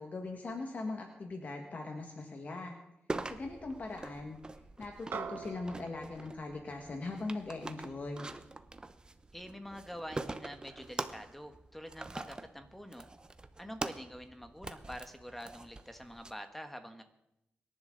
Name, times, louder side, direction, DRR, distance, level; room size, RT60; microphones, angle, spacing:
voice 1, 0.0-2.8 3.3-4.4 4.8-8.3, left 3 dB, 45° left, 2 dB, 1.7 m, -40 dB
sound 1, 3.1-16.3, right 2 dB, 20° right, 0.8 m, -44 dB
sound 2, 5.1-9.7, right 6 dB, 65° right, 1.1 m, -47 dB
voice 2, 9.3-13.1 13.6-17.0, equal, 5° left, 7 dB, 1.3 m, -46 dB
24.5 x 11.0 x 3.9 m, 0.86 s
wide cardioid pair, 125°, 4 cm